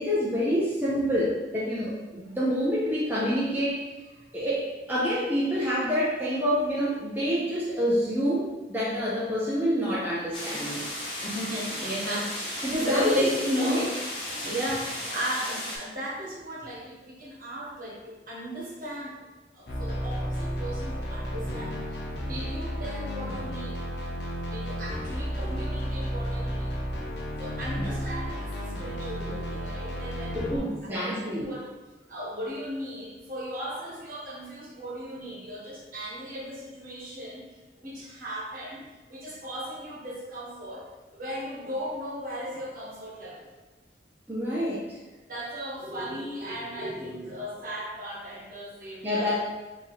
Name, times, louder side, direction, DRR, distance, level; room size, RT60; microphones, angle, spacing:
voice 1, 0.0-3.8 4.3-10.9 12.6-13.8 27.8-27.9 30.3-31.5 44.3-45.0 49.0-49.4, equal, 10° right, -8 dB, 0.6 m, -27 dB
sound 1, 10.3-15.8, left 1 dB, 30° left, 1.0 m, -35 dB
voice 2, 11.2-13.9 14.3-19.2 19.5-23.8 24.5-26.8 27.4-30.7 31.0-31.7 32.1-37.4 37.8-43.5 45.3-49.3, equal, 50° right, -5 dB, 1.2 m, -35 dB
sound 2, 19.7-30.6, equal, 70° left, 0.6 m, -32 dB
4.3 x 2.8 x 3.1 m, 1.2 s
head